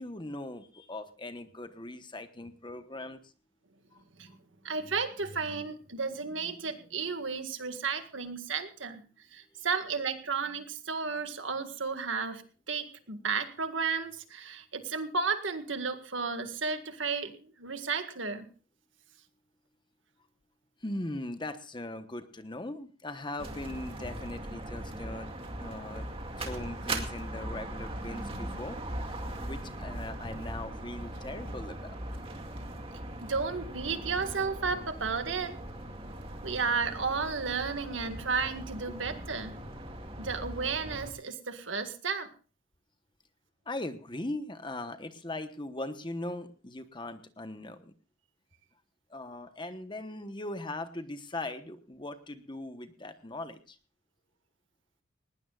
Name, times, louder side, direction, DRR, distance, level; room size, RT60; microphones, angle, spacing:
voice 1, 0.0-3.2 20.8-25.3 25.6-26.0 26.4-28.8 29.4-31.9 43.7-47.9 49.1-53.8, left 2 dB, 25° left, 9 dB, 1.1 m, -39 dB
voice 2, 4.6-9.0 9.3-12.4 12.7-18.5 33.2-35.6 36.4-39.6 40.2-42.3, right 5 dB, 85° right, 7 dB, 1.9 m, -33 dB
sound 1, 23.4-41.1, right 1 dB, 30° right, 2.3 m, -40 dB
19.5 x 18.0 x 2.5 m, 0.37 s
head